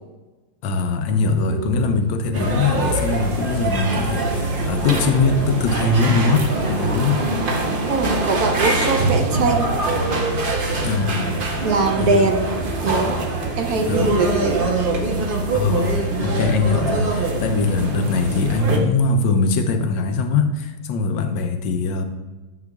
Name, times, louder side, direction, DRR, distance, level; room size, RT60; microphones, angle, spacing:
voice 1, 0.6-7.2 10.7-11.3 12.0-12.3 13.9-14.2 15.5-22.0, left 4 dB, 80° left, 7 dB, 1.4 m, -21 dB
sound 1, 1.0-19.3, left 1 dB, 60° left, 1.4 m, -31 dB
sound 2, 2.3-18.8, right 3 dB, 50° right, 0.6 m, -24 dB
voice 2, 7.7-9.7 11.6-12.6 12.8-13.2 13.6-14.7, right 3 dB, 65° right, 4 dB, 1.1 m, -22 dB
9.7 x 6.9 x 2.3 m, 1.2 s
omnidirectional pair, 2.0 m